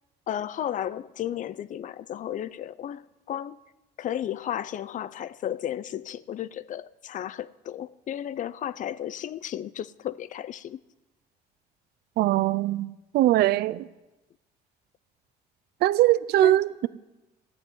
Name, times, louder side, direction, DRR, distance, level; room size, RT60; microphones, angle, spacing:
voice 1, 0.3-3.6 4.0-10.8 16.4-16.6, left 11 dB, 50° left, 0.5 m, -33 dB
voice 2, 12.2-13.9 15.8-16.9, right 14 dB, 75° right, 0.5 m, -22 dB
13.5 x 7.9 x 9.7 m
cardioid pair, 110°, 17 cm